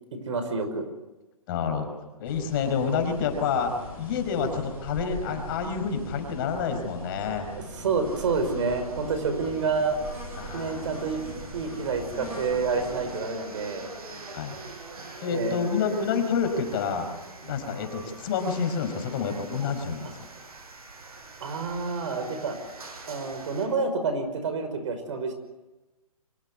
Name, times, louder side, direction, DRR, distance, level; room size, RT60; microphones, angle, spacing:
voice 1, 0.1-0.9 3.5-3.6 5.3-5.4 7.5-10.0 10.5-11.2 11.5-13.9 15.3-15.6 20.0-20.1 21.4-22.6 23.1-25.3, right 4 dB, 55° right, 8 dB, 5.5 m, -28 dB
voice 2, 1.5-1.9 2.2-7.5 10.4-10.8 14.3-14.6 15.2-17.1 17.4-20.1, left 6 dB, 35° left, 6 dB, 5.3 m, -28 dB
sound 1, 2.2-13.2, right 1 dB, 10° right, 8.0 m, -41 dB
sound 2, 8.1-23.7, right 3 dB, 75° right, 5.9 m, -44 dB
25.5 x 18.0 x 9.8 m, 1.1 s
hypercardioid pair, 150°, 19 cm